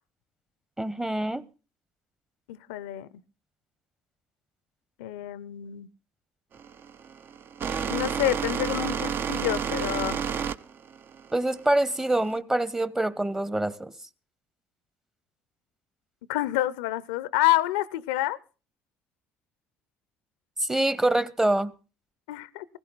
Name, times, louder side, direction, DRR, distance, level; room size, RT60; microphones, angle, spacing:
voice 1, 0.8-1.4 11.3-13.9 20.6-21.7, right 1 dB, 10° right, 16 dB, 1.0 m, -25 dB
voice 2, 2.5-3.1 5.0-5.9 7.9-10.2 16.3-18.4 22.3-22.7, left 15 dB, 90° left, 18 dB, 0.7 m, -28 dB
sound 1, 6.5-12.4, right 7 dB, 50° right, 0.8 m, -30 dB
17.5 x 15.5 x 4.1 m, 0.35 s
supercardioid pair, 75°, 5 cm